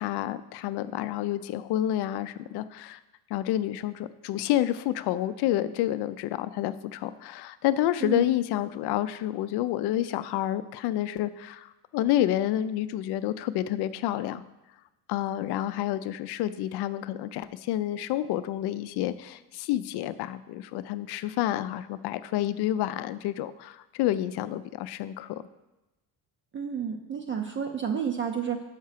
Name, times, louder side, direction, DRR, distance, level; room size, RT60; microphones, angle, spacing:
voice 1, 0.0-3.0 3.3-11.7 11.9-14.4 15.1-25.4, left 13 dB, 80° left, 14 dB, 0.5 m, -29 dB
voice 2, 26.5-28.6, right 7 dB, 30° right, 4 dB, 0.5 m, -30 dB
6.5 x 4.8 x 5.7 m, 1.0 s
cardioid pair, 145°, 39 cm